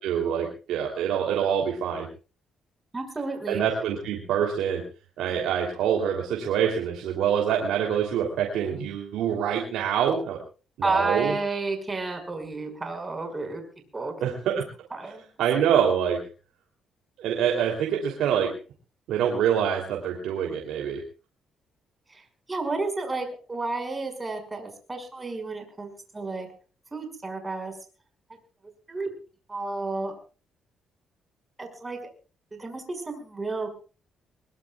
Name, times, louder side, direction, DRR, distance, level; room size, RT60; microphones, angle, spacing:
voice 1, 0.0-2.1 3.5-4.8 5.2-10.4 10.8-11.3 14.2-14.6 15.4-16.2 17.2-18.5 19.1-21.0, right 8 dB, 85° right, 1 dB, 3.2 m, -25 dB
voice 2, 2.9-3.6 10.8-13.6 13.9-14.1 14.9-15.3 22.1-22.2 22.5-26.5 26.9-27.7 28.9-29.1 29.5-30.1 31.6-32.0 32.5-33.8, right 3 dB, 20° right, 5 dB, 5.9 m, -31 dB
22.0 x 21.5 x 2.4 m, 0.36 s
cardioid pair, 90°, 0 cm